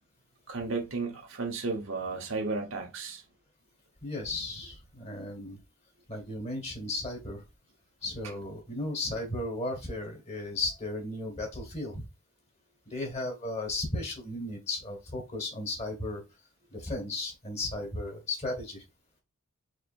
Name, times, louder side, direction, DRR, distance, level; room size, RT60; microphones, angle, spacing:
voice 1, 0.5-3.2, right 3 dB, 60° right, 1.1 m, -33 dB
voice 2, 4.0-5.6 6.1-7.4 8.0-12.1 12.9-16.2 16.7-18.8, left 2 dB, 30° left, 1.8 m, -35 dB
4.9 x 4.0 x 2.6 m
head